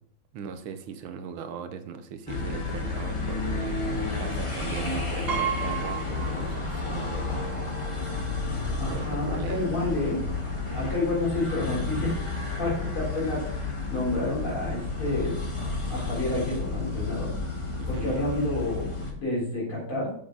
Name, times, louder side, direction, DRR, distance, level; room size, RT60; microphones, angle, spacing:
voice 1, 0.3-8.0 8.9-9.7 17.8-18.1, right 7 dB, 75° right, 9 dB, 1.6 m, -39 dB
sound 1, 2.3-19.1, left 3 dB, 20° left, 0.8 m, -31 dB
Piano, 5.3-7.1 7.4-7.5 8.7-8.8 9.1-9.3, right 8 dB, 45° right, 0.8 m, -33 dB
voice 2, 8.8-10.2 10.7-15.4 15.9-17.3 17.9-20.1, left 2 dB, 80° left, -6 dB, 4.6 m, -29 dB
7.1 x 6.9 x 3.9 m, 0.67 s
omnidirectional pair, 2.3 m